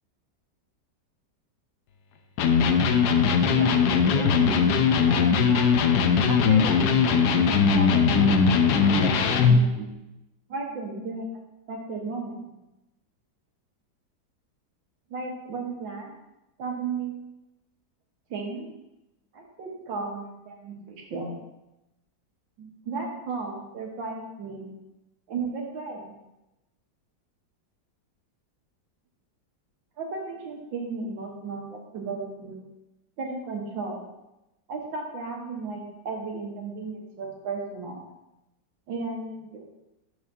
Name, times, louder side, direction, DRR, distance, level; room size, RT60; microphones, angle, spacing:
Electric guitar, 2.4-9.7, left 5 dB, 70° left, 1.1 m, -20 dB
voice 1, 3.5-3.8 4.1-4.8 5.1-5.7 6.3-9.9 10.5-11.3 11.7-12.4 15.1-16.1 16.6-17.2 18.3-18.7 19.3-21.4 22.6-24.7 25.3-26.1 30.0-32.6 33.2-34.0 34.7-38.1 38.9-39.6, right 4 dB, 90° right, 0 dB, 2.0 m, -34 dB
11.5 x 4.8 x 2.7 m, 0.93 s
omnidirectional pair, 2.0 m